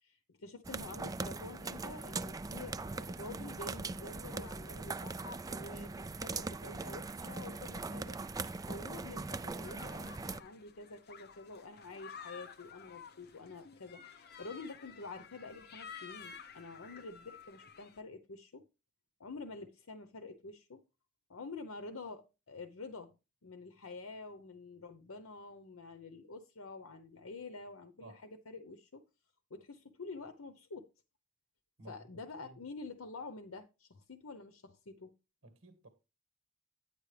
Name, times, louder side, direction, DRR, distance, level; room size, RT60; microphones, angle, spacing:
voice 1, 0.0-8.4 8.7-18.7 19.2-20.8 21.3-23.1 23.4-29.0 29.5-30.9 31.9-35.1, left 3 dB, 80° left, 0.8 m, -48 dB
sound 1, 0.6-10.4, right 3 dB, 15° right, 0.4 m, -41 dB
sound 2, 9.6-18.0, left 6 dB, 50° left, 0.9 m, -52 dB
voice 2, 31.8-32.6 35.4-35.9, right 1 dB, 65° right, 1.6 m, -55 dB
9.7 x 9.6 x 3.3 m
head